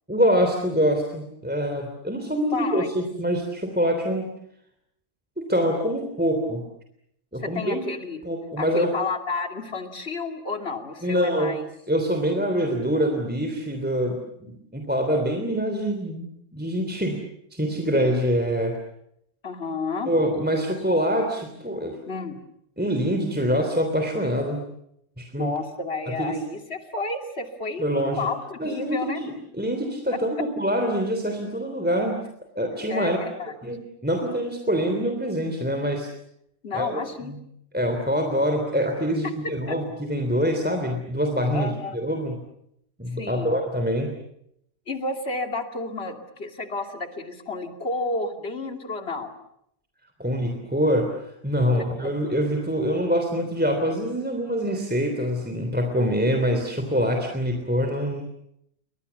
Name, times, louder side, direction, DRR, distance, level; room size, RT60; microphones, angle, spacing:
voice 1, 0.1-4.3 5.4-6.6 7.3-7.8 8.2-8.9 11.0-11.5 11.9-17.2 17.5-18.8 20.0-22.0 22.8-24.6 25.2-25.5 26.1-26.4 27.8-28.3 28.6-32.2 32.5-33.2 33.6-36.1 36.7-37.0 37.7-42.4 43.0-44.2 50.2-51.1 51.4-58.3, equal, 5° right, 4 dB, 3.3 m, -25 dB
voice 2, 2.5-2.9 7.4-8.2 8.6-11.6 19.4-20.1 22.1-22.4 25.4-29.2 32.9-33.5 36.6-37.3 39.7-39.8 41.5-42.0 43.2-43.5 44.9-49.3 51.8-52.1, left 3 dB, 40° left, 5 dB, 2.9 m, -31 dB
29.5 x 24.5 x 7.1 m, 0.75 s
omnidirectional pair, 1.7 m